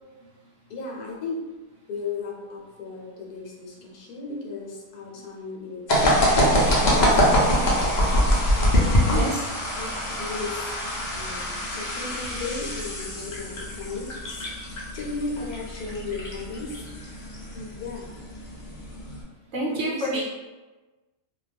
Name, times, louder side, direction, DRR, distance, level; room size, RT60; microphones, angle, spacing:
voice 1, 0.7-1.4 1.9-6.0 6.6-7.6 8.5-9.4 9.7-9.9 10.2-10.7 11.1-17.1 17.5-18.2 19.7-20.2, left 3 dB, 80° left, -2 dB, 1.2 m, -35 dB
sound 1, 5.9-19.2, equal, 55° left, 0.5 m, -24 dB
voice 2, 19.5-20.2, right 1 dB, 65° right, -5 dB, 0.9 m, -27 dB
2.6 x 2.3 x 3.3 m, 1.2 s
omnidirectional pair, 1.6 m